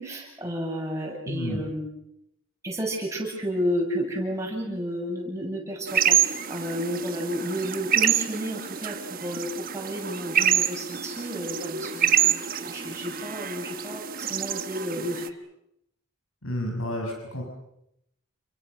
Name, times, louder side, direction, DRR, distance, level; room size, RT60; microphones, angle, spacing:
voice 1, 0.0-1.9 2.6-15.3, equal, 15° right, -1 dB, 7.9 m, -32 dB
voice 2, 1.3-1.6 16.4-17.4, equal, 70° left, 2 dB, 6.3 m, -30 dB
sound 1, 5.9-15.3, right 9 dB, 40° right, 1.2 m, -27 dB
29.5 x 23.5 x 6.6 m, 0.81 s
head